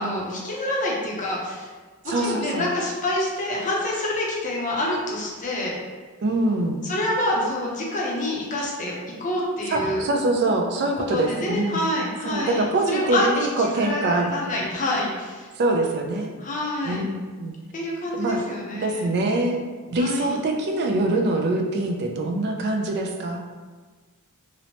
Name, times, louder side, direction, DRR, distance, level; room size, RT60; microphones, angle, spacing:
voice 1, 0.0-1.7 2.0-5.7 6.8-10.0 11.1-15.5 16.4-17.0 17.7-19.1 20.0-20.4, left 1 dB, 35° left, -4 dB, 0.5 m, -27 dB
voice 2, 2.1-2.7 6.2-6.8 9.7-11.8 12.2-14.3 15.6-16.3 16.8-17.5 18.1-18.5 18.8-19.6 19.9-23.4, right 2 dB, 50° right, 3 dB, 0.3 m, -24 dB
2.9 x 2.0 x 2.8 m, 1.4 s
head